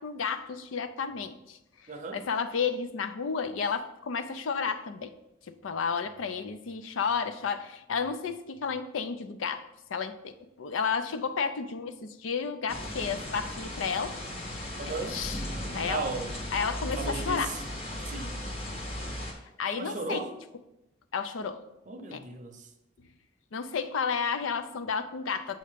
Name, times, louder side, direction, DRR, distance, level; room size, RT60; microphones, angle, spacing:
voice 1, 0.0-1.6 2.1-5.2 5.5-14.2 14.8-15.4 15.7-16.0 16.5-17.5 17.9-18.1 19.0-19.1 19.6-20.3 21.1-21.6 22.1-22.3 23.5-25.6, left 6 dB, 85° left, 9 dB, 0.4 m, -32 dB
voice 2, 1.9-2.2 14.8-15.2 15.9-16.3 17.0-17.6 18.1-18.4 19.7-20.4 21.9-22.7, right 3 dB, 40° right, 5 dB, 0.6 m, -36 dB
sound 1, 12.7-19.3, left 1 dB, 30° left, 0.9 m, -36 dB
7.5 x 2.8 x 5.0 m, 0.91 s
head